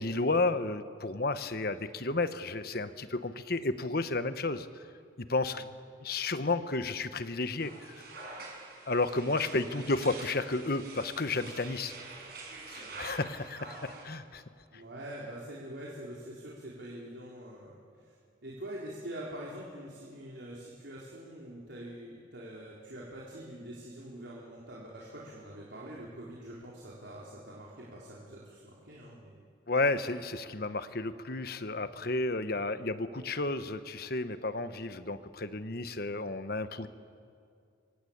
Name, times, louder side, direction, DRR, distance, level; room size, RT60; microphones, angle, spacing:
voice 1, 0.0-4.7 5.2-5.7 6.0-7.7 8.9-11.9 12.7-14.4 29.7-36.9, left 3 dB, 55° left, 11 dB, 1.2 m, -32 dB
sound 1, 7.6-14.0, right 3 dB, 55° right, 6.9 m, -46 dB
voice 2, 14.7-17.8 18.4-29.4, right 1 dB, 75° right, -5 dB, 4.0 m, -45 dB
27.5 x 24.0 x 8.7 m, 2.3 s
head